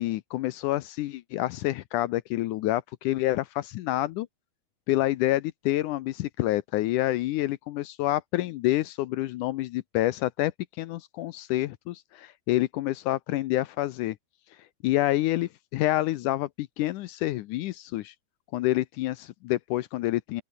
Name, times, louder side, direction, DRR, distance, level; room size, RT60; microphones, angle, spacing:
voice 1, 0.0-4.3 4.9-10.5 10.8-14.2 14.8-18.1 18.5-20.4, left 16 dB, 80° left, 1.8 m, -28 dB
open air
omnidirectional pair, 4.3 m